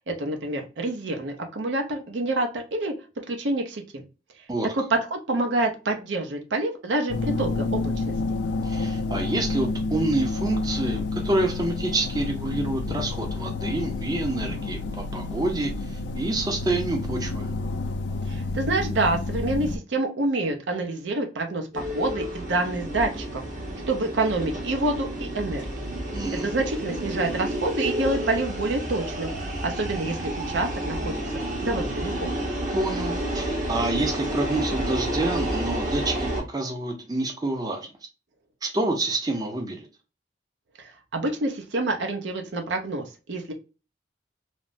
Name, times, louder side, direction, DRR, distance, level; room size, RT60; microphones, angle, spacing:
voice 1, 0.1-2.9 3.3-4.0 4.7-8.1 18.3-23.4 23.9-25.7 26.4-29.3 29.6-31.2 31.6-32.3 40.8-43.5, right 2 dB, 80° right, 0.6 m, -27 dB
sound 1, 7.1-19.8, left 3 dB, 65° left, 0.4 m, -29 dB
voice 2, 8.6-17.5 26.1-26.5 32.7-37.9 38.6-39.9, right 2 dB, 20° right, 0.5 m, -28 dB
sound 2, 21.7-36.4, right 1 dB, 45° right, 0.9 m, -30 dB
3.2 x 2.0 x 2.4 m
head